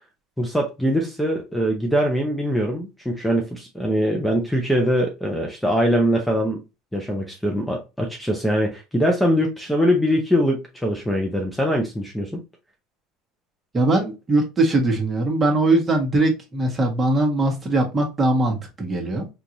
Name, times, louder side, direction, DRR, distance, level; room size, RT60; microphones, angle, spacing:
voice 1, 0.4-6.6 6.9-12.4, equal, 5° left, 0.7 m, -22 dB
voice 2, 13.7-19.3, right 2 dB, 25° right, 1.2 m, -21 dB
3.8 x 2.5 x 2.9 m
supercardioid pair, 105°, 0 cm